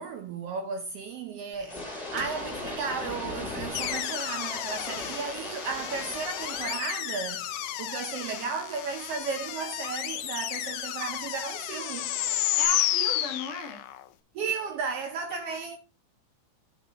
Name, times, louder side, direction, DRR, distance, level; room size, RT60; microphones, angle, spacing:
voice 1, 0.0-7.5 7.8-12.2 14.3-15.8, right 5 dB, 70° right, 1.6 m, -34 dB
sound 1, 1.5-12.6, left 2 dB, 20° left, 2.4 m, -41 dB
sound 2, 3.7-14.0, left 12 dB, 85° left, 2.1 m, -32 dB
voice 2, 12.6-13.8 15.3-15.6, left 3 dB, 50° left, 2.3 m, -36 dB
12.0 x 6.0 x 2.9 m
omnidirectional pair, 3.3 m